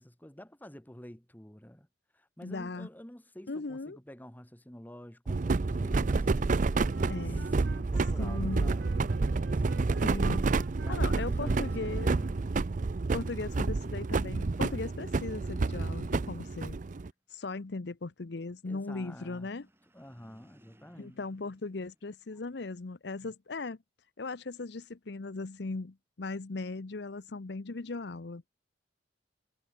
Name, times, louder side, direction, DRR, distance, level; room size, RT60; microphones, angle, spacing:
voice 1, 0.0-1.9 2.1-6.3 7.3-10.2 10.8-12.5 18.6-19.5 19.9-21.2, equal, 10° left, 1.5 m, -49 dB
voice 2, 2.4-2.9 3.5-4.0 7.1-7.5 8.2-8.7 10.0-10.4 10.9-12.1 13.1-16.8 17.3-19.7 21.0-23.8 24.2-28.4, left 3 dB, 65° left, 0.8 m, -38 dB
sound 1, 5.3-17.1, right 3 dB, 45° right, 0.5 m, -29 dB
Wind instrument woodwind instrument, 6.8-12.5, right 4 dB, 75° right, 0.8 m, -48 dB
sound 2, 19.1-22.7, equal, 15° right, 2.7 m, -64 dB
head